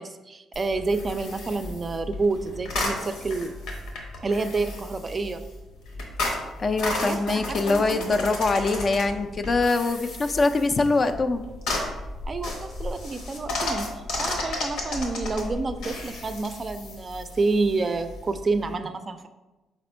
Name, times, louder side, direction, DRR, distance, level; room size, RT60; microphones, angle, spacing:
voice 1, 0.0-3.5 4.2-5.4 6.9-8.1 12.3-13.9 14.2-19.3, right 3 dB, 35° right, 9 dB, 0.4 m, -28 dB
sound 1, 0.5-18.7, left 2 dB, 85° left, 1.0 m, -34 dB
voice 2, 6.6-11.5, left 3 dB, 40° left, 7 dB, 0.3 m, -23 dB
4.2 x 2.9 x 4.3 m, 1.1 s
cardioid pair, 90°, 0 cm